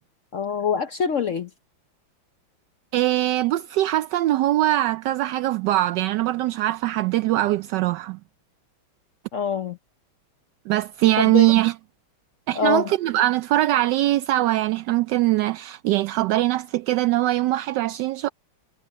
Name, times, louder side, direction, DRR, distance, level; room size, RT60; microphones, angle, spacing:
voice 1, 0.3-1.5 9.3-9.8 11.2-11.5 12.5-12.9, left 6 dB, 65° left, 0.7 m, -24 dB
voice 2, 2.9-8.2 10.7-11.7 12.5-18.3, right 16 dB, 75° right, 1.0 m, -22 dB
omnidirectional pair, 2.3 m